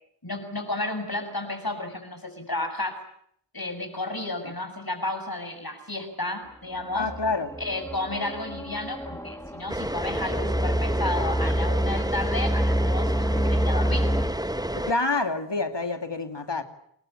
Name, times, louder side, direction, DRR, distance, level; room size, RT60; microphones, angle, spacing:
voice 1, 0.2-3.0 3.5-7.1 7.6-14.1, left 2 dB, 55° left, 7.3 m, -32 dB
voice 2, 6.9-7.5 14.7-16.6, left 3 dB, 70° left, 2.7 m, -27 dB
sound 1, 7.0-14.3, equal, 5° left, 2.1 m, -27 dB
sound 2, 9.7-14.9, right 1 dB, 10° right, 1.2 m, -30 dB
28.5 x 22.0 x 8.7 m
wide cardioid pair, 45°, 44 cm